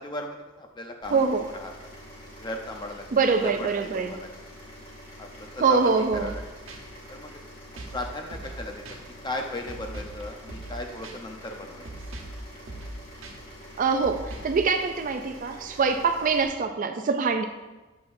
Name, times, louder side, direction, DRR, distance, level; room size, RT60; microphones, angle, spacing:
voice 1, 0.0-1.9 2.4-3.0 3.4-4.6 5.2-6.4 7.1-7.3 7.9-8.8 9.2-11.9, left 1 dB, 20° left, 3 dB, 0.7 m, -36 dB
sound 1, 1.0-16.4, equal, 45° left, 2.1 m, -46 dB
voice 2, 1.1-1.4 3.1-4.1 5.6-6.3 13.8-17.4, right 4 dB, 40° right, 7 dB, 0.4 m, -24 dB
sound 2, 6.1-6.4 6.7-6.8 7.8-8.0 8.3-8.6 8.9-9.0 9.7-10.2 10.5-10.8 11.0-11.1 11.9-12.4 12.7-12.9 13.2-13.3 14.0-14.6, right 2 dB, 65° right, 1.0 m, -39 dB
8.8 x 6.8 x 2.6 m, 1.2 s
head